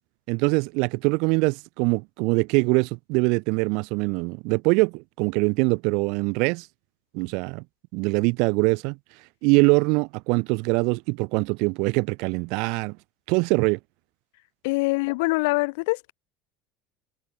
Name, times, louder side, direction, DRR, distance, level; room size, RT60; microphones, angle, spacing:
voice 1, 0.3-6.7 7.1-7.6 7.9-9.0 9.4-13.0 13.3-13.8, right 31 dB, 70° right, 3.3 m, -23 dB
voice 2, 14.6-16.1, left 25 dB, 80° left, 4.2 m, -24 dB
supercardioid pair, 125°, 0 cm